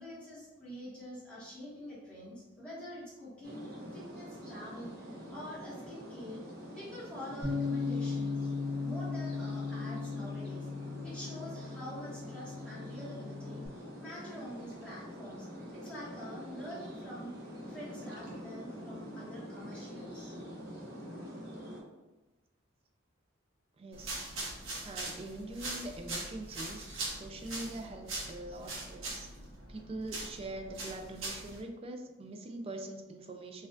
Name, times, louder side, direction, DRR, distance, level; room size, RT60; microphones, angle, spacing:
voice 1, 0.0-4.9 5.3-6.4 6.7-8.5 8.8-10.7 11.0-17.3 17.7-20.3, equal, 5° left, -10 dB, 1.1 m, -46 dB
sound 1, 3.4-21.8, equal, 50° right, 0.8 m, -46 dB
Bass guitar, 7.4-13.7, left 4 dB, 35° left, 1.2 m, -37 dB
voice 2, 23.8-24.3 24.8-29.3 29.7-33.7, right 2 dB, 30° right, 4 dB, 0.3 m, -43 dB
sound 2, 23.9-31.6, right 2 dB, 80° right, 1.1 m, -41 dB
4.2 x 2.4 x 2.5 m, 1.1 s
head